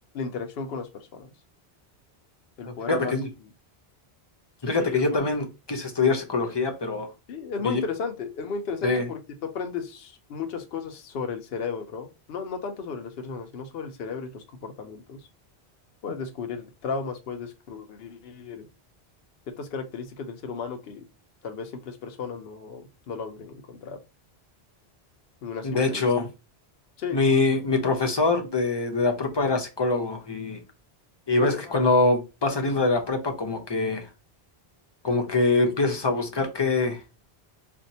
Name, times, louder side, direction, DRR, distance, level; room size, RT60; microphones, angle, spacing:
voice 1, 0.1-1.3 2.6-3.2 4.7-5.0 7.3-15.2 16.0-18.7 19.5-21.0 21.4-24.0 25.4-26.0 27.0-27.2 31.4-31.6, left 5 dB, 70° left, 0.9 m, -34 dB
voice 2, 2.7-3.3 4.6-7.1 7.6-7.8 8.8-9.1 25.6-26.3 27.1-30.6 31.3-34.1 35.0-37.0, left 3 dB, 30° left, 0.7 m, -24 dB
4.4 x 2.4 x 2.7 m
omnidirectional pair, 1.1 m